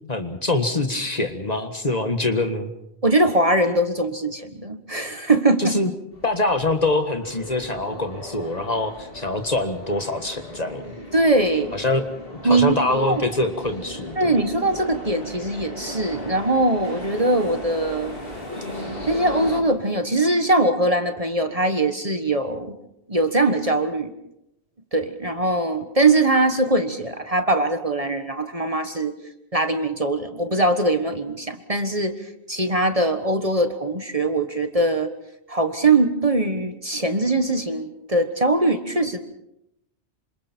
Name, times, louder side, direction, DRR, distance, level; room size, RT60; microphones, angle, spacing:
voice 1, 0.0-2.7 5.6-5.9 6.2-10.9 11.7-12.0 12.4-14.4, left 2 dB, 35° left, 7 dB, 1.7 m, -24 dB
voice 2, 3.0-5.7 11.1-11.7 12.4-13.3 14.2-18.2 19.1-22.7 23.1-24.1 24.9-29.1 29.5-32.1 32.5-35.1 35.5-39.2, right 2 dB, 30° right, 7 dB, 1.5 m, -21 dB
sound 1, 6.1-19.6, left 1 dB, 55° left, 4.2 m, -36 dB
28.0 x 26.5 x 4.5 m, 0.81 s
omnidirectional pair, 1.1 m